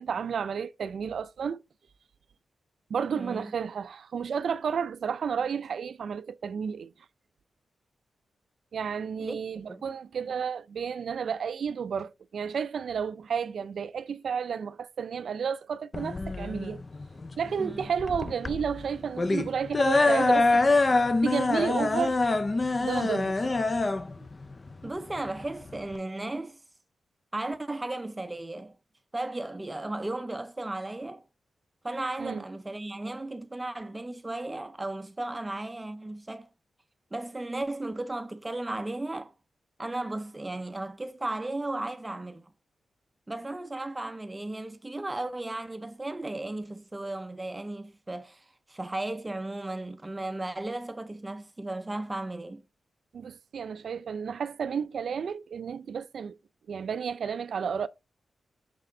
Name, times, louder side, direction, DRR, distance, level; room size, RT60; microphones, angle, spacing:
voice 1, 0.0-1.6 2.9-6.9 8.7-16.8 17.4-20.6 21.2-22.2 22.8-23.7 32.2-32.4 53.1-56.4 56.7-57.9, right 7 dB, 70° right, 0.4 m, -32 dB
voice 2, 9.2-9.9 17.6-17.9 24.8-26.6 27.3-28.8 29.1-31.2 31.8-36.5 37.1-39.3 39.8-42.5 43.3-52.6, right 2 dB, 15° right, 0.5 m, -35 dB
sound 1, 15.9-26.0, left 3 dB, 30° left, 0.5 m, -25 dB
6.1 x 4.2 x 3.8 m
wide cardioid pair, 110°, 0 cm